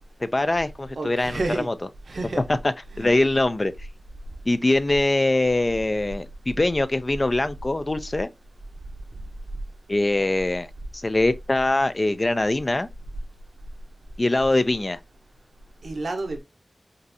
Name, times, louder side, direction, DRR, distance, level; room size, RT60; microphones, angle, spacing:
voice 1, 0.2-1.7 2.5-3.7 4.5-8.3 9.9-10.7 10.9-12.9 14.2-15.0, left 2 dB, 35° left, 0.4 m, -23 dB
voice 2, 1.0-1.7 2.1-2.4 2.9-3.1 15.8-16.4, right 2 dB, 90° right, 1.0 m, -29 dB
5.2 x 2.6 x 2.7 m
wide cardioid pair, 85°, 0 cm